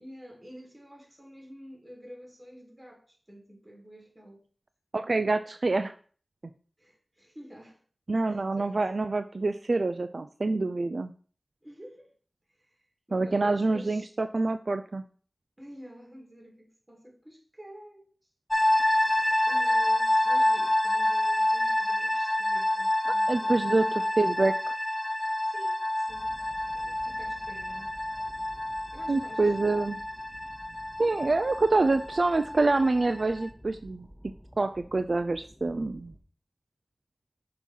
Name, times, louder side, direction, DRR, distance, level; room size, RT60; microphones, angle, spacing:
voice 1, 0.0-4.5 6.8-7.8 8.3-8.8 11.6-12.1 12.5-12.7 13.1-14.2 15.6-18.1 18.9-19.0 19.5-24.4 25.3-26.4 27.0-27.9 28.9-29.4, equal, 20° right, 2.0 m, -49 dB
voice 2, 4.9-5.9 8.1-11.1 13.1-15.0 23.3-23.8 24.2-24.6 29.1-30.0 31.0-34.1 34.6-36.1, right 3 dB, 60° right, 0.3 m, -26 dB
sound 1, 18.5-33.5, left 1 dB, 20° left, 0.5 m, -28 dB
sound 2, 26.1-36.2, equal, 5° left, 1.7 m, -52 dB
6.1 x 2.9 x 5.3 m
cardioid pair, 45°, 0 cm